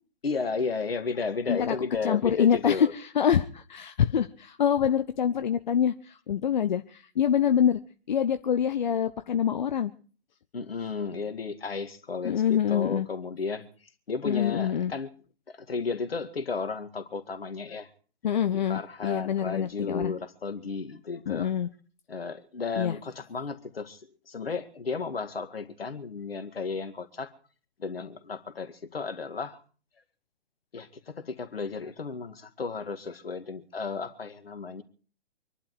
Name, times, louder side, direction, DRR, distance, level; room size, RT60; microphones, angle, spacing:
voice 1, 0.2-2.9 10.5-13.7 14.1-15.1 15.5-17.9 18.5-21.5 22.1-24.0 24.3-27.3 27.8-29.6 30.7-34.8, left 4 dB, 70° left, 2.2 m, -33 dB
voice 2, 2.0-7.8 8.1-9.9 12.2-13.1 14.2-14.9 18.2-20.1 21.3-21.7 22.8-23.0, left 8 dB, 45° left, 0.8 m, -25 dB
25.0 x 11.5 x 4.7 m
figure-of-eight pair, 130°, 31 cm